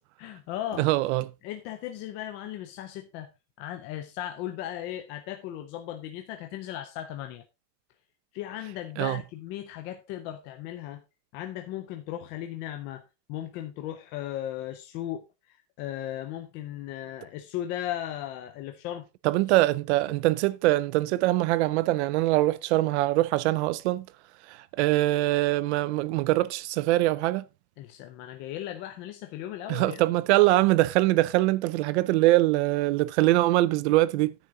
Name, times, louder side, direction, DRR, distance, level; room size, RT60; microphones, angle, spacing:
voice 1, 0.2-0.9 1.4-3.3 3.6-7.4 8.3-11.0 11.3-13.0 13.3-19.1 27.8-30.0, left 12 dB, 25° left, 0.4 m, -36 dB
voice 2, 0.8-1.3 9.0-9.2 19.2-24.1 24.5-27.4 29.7-34.3, right 17 dB, 50° right, 0.5 m, -23 dB
9.8 x 8.4 x 3.8 m
supercardioid pair, 180°, 48 cm